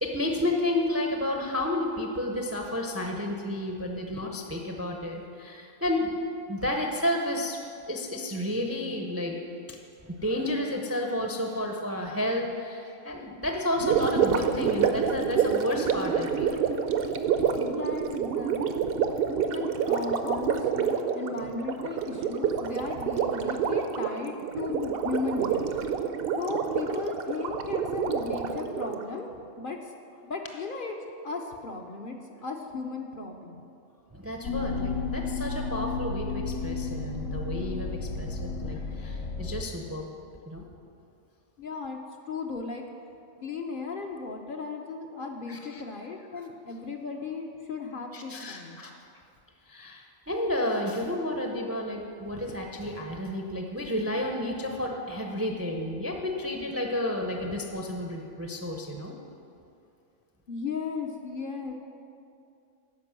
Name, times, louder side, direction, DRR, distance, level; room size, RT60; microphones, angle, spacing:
voice 1, 0.0-6.1 6.5-9.4 9.7-16.6 34.1-40.1 40.5-40.7 45.5-45.8 48.1-48.9 49.7-59.1, left 1 dB, 15° right, 2 dB, 0.5 m, -31 dB
Gurgling, 13.8-29.1, right 7 dB, 60° right, 0.7 m, -28 dB
voice 2, 17.6-19.0 19.5-25.7 26.4-29.3 29.6-29.9 30.2-30.9 31.2-33.6 41.6-42.0 42.3-42.8 43.4-48.8 60.5-61.7, left 4 dB, 50° left, 2 dB, 0.7 m, -36 dB
sound 1, 34.4-39.6, left 4 dB, 80° left, 1.2 m, -32 dB
11.0 x 5.2 x 7.4 m, 2.5 s
omnidirectional pair, 1.3 m